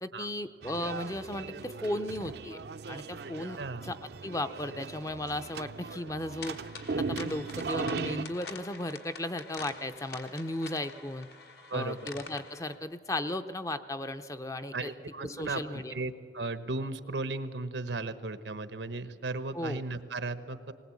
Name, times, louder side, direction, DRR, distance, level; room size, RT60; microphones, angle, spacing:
voice 1, 0.0-2.6 2.9-3.6 3.8-6.6 6.9-11.3 11.7-14.9 15.2-15.9 19.5-19.8, left 1 dB, 20° left, 9 dB, 0.6 m, -35 dB
sound 1, 0.6-8.3, right 4 dB, 65° right, 0.6 m, -38 dB
voice 2, 3.6-3.9 11.7-12.1 14.7-20.7, right 3 dB, 90° right, 12 dB, 1.0 m, -36 dB
sound 2, 6.4-12.8, left 4 dB, 65° left, 1.5 m, -47 dB
20.0 x 19.0 x 8.5 m, 2.1 s
head